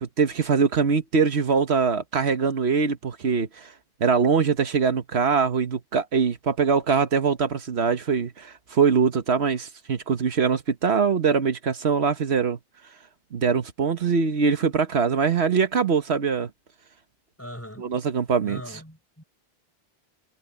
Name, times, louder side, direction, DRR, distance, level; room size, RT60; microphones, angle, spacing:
voice 1, 0.0-3.7 4.0-12.6 13.3-16.5 17.8-18.6, right 5 dB, 80° right, 1.4 m, -23 dB
voice 2, 17.4-17.9 18.4-19.2, equal, 15° left, 4.1 m, -40 dB
omnidirectional pair, 1.1 m